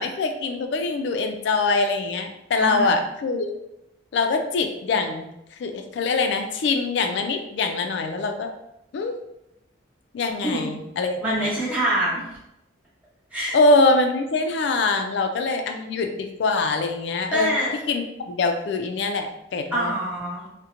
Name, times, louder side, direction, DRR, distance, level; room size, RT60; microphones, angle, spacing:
voice 1, 0.0-3.5 4.1-5.3 5.6-8.5 8.9-9.2 10.1-11.5 13.5-17.5 17.9-20.0, left 3 dB, 65° left, 6 dB, 0.3 m, -23 dB
voice 2, 2.6-3.0 10.4-10.7 11.2-12.3 13.3-13.6 17.3-17.8 19.7-20.6, right 1 dB, 10° right, -10 dB, 1.0 m, -25 dB
2.8 x 2.1 x 2.5 m, 0.84 s
head